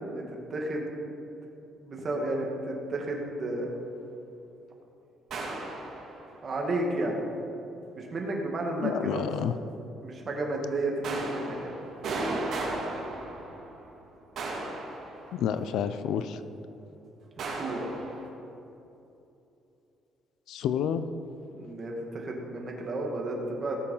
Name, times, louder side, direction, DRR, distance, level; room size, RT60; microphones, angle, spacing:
voice 1, 0.5-0.9 1.8-3.7 6.4-7.2 7.9-9.2 10.0-11.7 17.4-17.9 21.5-23.8, right 2 dB, 30° right, 0 dB, 2.1 m, -32 dB
sound 1, 5.3-6.4 11.0-13.9 14.4-15.7 17.4-18.3, right 2 dB, 50° right, 2.6 m, -35 dB
voice 2, 8.8-9.5 15.3-16.4 20.5-21.0, left 8 dB, 70° left, 11 dB, 0.6 m, -29 dB
18.0 x 7.1 x 5.6 m, 2.8 s
cardioid pair, 170°, 0 cm